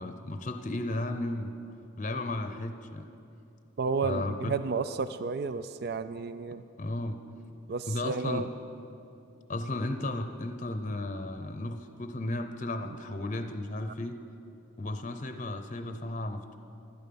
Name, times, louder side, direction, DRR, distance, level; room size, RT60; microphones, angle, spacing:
voice 1, 0.0-1.5 2.0-3.1 4.0-4.5 6.8-7.2 7.9-8.4 9.5-14.2 14.8-16.6, left 2 dB, 35° left, 7 dB, 0.7 m, -34 dB
voice 2, 3.8-6.6 7.7-8.5, right 4 dB, 50° right, 12 dB, 0.3 m, -32 dB
16.0 x 12.0 x 5.3 m, 2.8 s
head